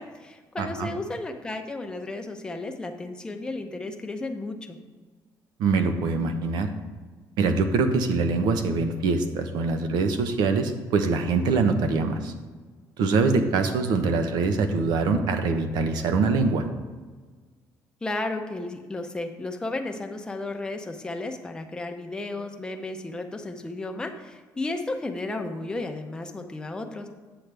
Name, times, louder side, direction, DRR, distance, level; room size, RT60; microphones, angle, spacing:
voice 1, 0.0-4.8 18.0-27.1, left 2 dB, 10° left, 4 dB, 0.7 m, -33 dB
voice 2, 0.6-0.9 5.6-6.7 7.4-12.3 13.0-16.6, right 4 dB, 75° right, 7 dB, 0.9 m, -24 dB
8.4 x 7.8 x 3.4 m, 1.4 s
cardioid pair, 145°, 7 cm